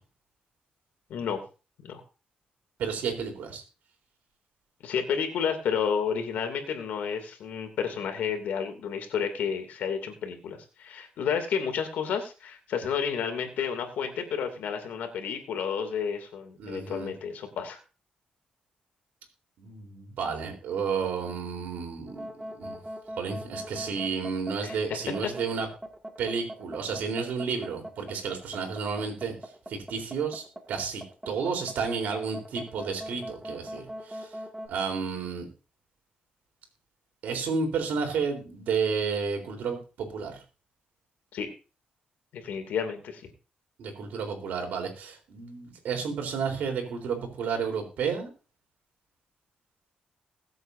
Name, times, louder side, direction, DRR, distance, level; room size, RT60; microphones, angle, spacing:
voice 1, 1.1-1.4 1.8-2.0 4.8-17.8 24.6-25.0 41.3-41.5 42.3-43.2, left 7 dB, 90° left, 6 dB, 2.8 m, -31 dB
voice 2, 2.8-3.6 16.6-17.1 19.6-22.8 23.2-25.7 26.2-29.4 29.7-34.3 34.7-35.5 37.2-40.4 43.8-48.3, right 5 dB, 85° right, 3 dB, 4.1 m, -31 dB
sound 1, 22.1-34.7, equal, 10° right, 2.1 m, -40 dB
21.5 x 8.0 x 2.8 m, 0.33 s
cardioid pair, 100°, 3 cm